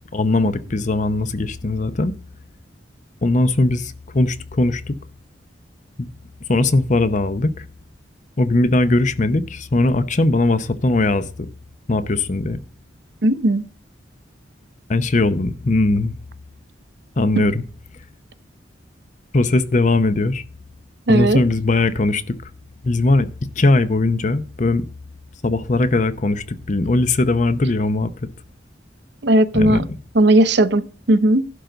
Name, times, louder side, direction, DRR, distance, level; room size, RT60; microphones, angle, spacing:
voice 1, 0.1-2.1 3.2-4.9 6.0-6.1 6.5-7.6 8.4-11.5 11.9-12.6 14.9-16.1 17.2-17.6 19.3-20.4 21.1-22.3 22.8-23.3 23.6-24.9 25.4-28.1 29.5-29.8, left 2 dB, 40° left, 0.7 m, -19 dB
voice 2, 13.2-13.6 17.4-17.5 21.1-21.4 29.2-29.8 30.1-31.5, right 1 dB, 65° right, 0.7 m, -16 dB
11.5 x 3.9 x 7.8 m
head